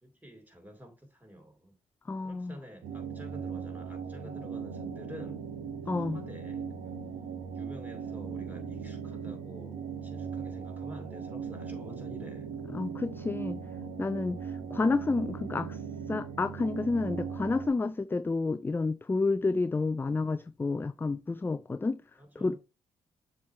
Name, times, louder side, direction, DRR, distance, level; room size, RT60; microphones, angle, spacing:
voice 1, 0.0-1.8 2.2-5.4 5.8-7.0 7.5-12.5 17.4-17.5 22.2-22.6, equal, 10° right, 2.4 m, -49 dB
voice 2, 2.1-2.6 5.9-6.2 12.7-13.6 14.0-15.8 16.1-22.0 22.4-22.6, left 3 dB, 15° left, 0.3 m, -30 dB
sound 1, 2.8-17.7, right 6 dB, 70° right, 1.1 m, -39 dB
7.1 x 3.2 x 4.4 m
hypercardioid pair, 45°, 15 cm